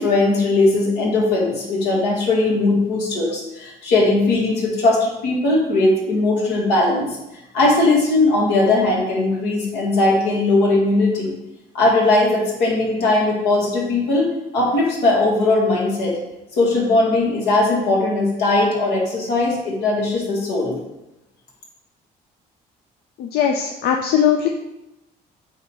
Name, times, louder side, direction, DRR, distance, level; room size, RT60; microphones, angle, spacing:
voice 1, 0.0-7.1 7.5-11.3 11.7-14.3 14.5-16.1 16.6-20.7, left 2 dB, 90° left, -3 dB, 2.1 m, -19 dB
voice 2, 23.2-24.5, left 8 dB, 70° left, 3 dB, 0.6 m, -19 dB
8.2 x 3.0 x 4.7 m, 0.94 s
cardioid pair, 110°, 17 cm